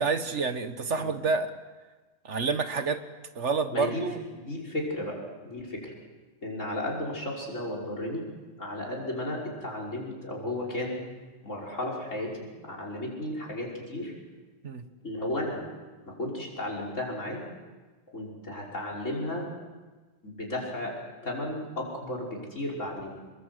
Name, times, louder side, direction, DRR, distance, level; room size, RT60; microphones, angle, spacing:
voice 1, 0.0-1.5 2.2-3.0 3.3-4.2 14.6-14.9, right 4 dB, 65° right, 9 dB, 1.7 m, -28 dB
voice 2, 3.7-4.0 4.3-5.2 5.4-5.9 6.4-8.2 8.6-11.0 11.4-14.1 15.0-15.6 16.1-17.4 18.1-19.5 20.2-20.9 21.2-23.2, left 1 dB, 80° left, 0 dB, 6.0 m, -34 dB
27.5 x 22.5 x 8.1 m, 1.3 s
omnidirectional pair, 1.3 m